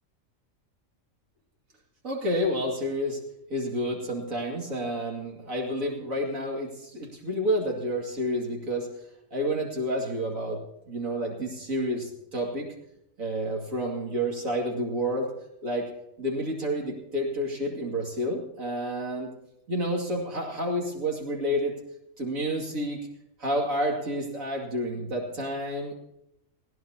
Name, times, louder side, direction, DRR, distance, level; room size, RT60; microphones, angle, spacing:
voice 1, 2.0-3.2 3.5-8.9 9.3-10.6 10.9-12.7 13.2-15.3 15.6-15.9 16.2-19.3 19.7-21.7 22.2-23.0 23.4-25.9, equal, 85° right, -2 dB, 2.8 m, -29 dB
20.5 x 16.0 x 2.9 m, 0.82 s
omnidirectional pair, 1.4 m